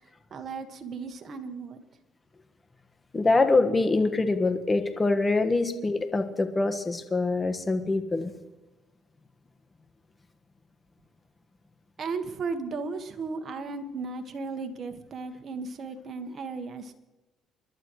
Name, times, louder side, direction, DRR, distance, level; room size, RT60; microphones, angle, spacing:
voice 1, 0.3-1.8 12.0-16.9, right 4 dB, 45° right, 7 dB, 1.6 m, -35 dB
voice 2, 3.1-8.3, left 3 dB, 20° left, 7 dB, 1.5 m, -24 dB
29.0 x 11.5 x 3.2 m, 1.1 s
cardioid pair, 95°, 0 cm